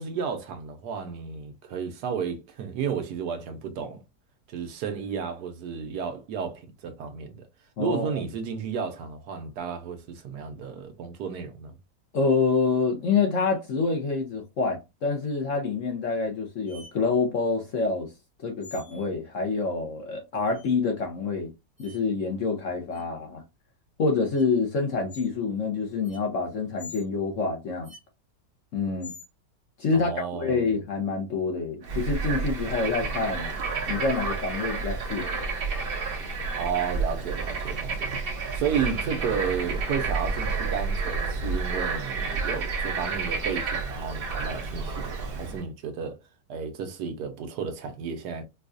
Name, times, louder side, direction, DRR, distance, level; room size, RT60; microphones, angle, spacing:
voice 1, 0.0-4.0 4.5-7.5 7.8-11.7 29.9-30.7 36.5-38.1 38.5-46.2 46.5-48.4, right 6 dB, 75° right, 1.2 m, -32 dB
voice 2, 7.8-8.2 12.1-18.1 18.4-21.5 21.8-23.4 24.0-27.9 28.7-29.1 29.8-33.5 33.9-35.5, left 4 dB, 60° left, 0.9 m, -27 dB
sound 1, 16.7-16.9 18.6-19.1 20.5-20.7 21.8-22.0 22.9-23.0 24.3-24.4 25.1-25.3 26.0-26.2 26.8-27.0 27.8-28.0 29.0-29.3, left 4 dB, ahead, 0.6 m, -45 dB
Bird / Frog, 31.8-45.6, right 4 dB, 50° right, 0.7 m, -30 dB
4.6 x 2.3 x 2.5 m
omnidirectional pair, 1.9 m